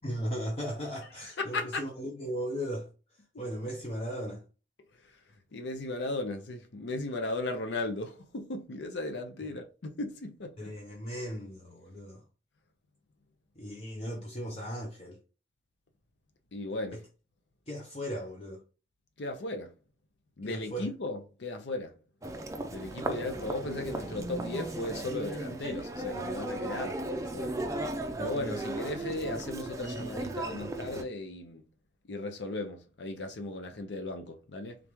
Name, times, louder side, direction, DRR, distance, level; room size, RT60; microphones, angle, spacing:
voice 1, 0.0-2.9 3.4-4.4 9.4-9.5 10.6-12.2 13.6-15.2 16.9-17.0 17.7-18.6 20.4-20.9, equal, 35° left, 0.7 m, -37 dB
voice 2, 1.4-1.9 5.0-5.2 5.5-10.7 16.5-17.1 19.2-19.7 20.4-21.9 22.7-27.0 27.3-27.6 27.9-31.6 32.1-34.8, left 2 dB, 85° left, 0.6 m, -36 dB
Human voice, 22.2-31.0, right 2 dB, 20° right, 0.4 m, -36 dB
3.8 x 3.4 x 3.0 m
head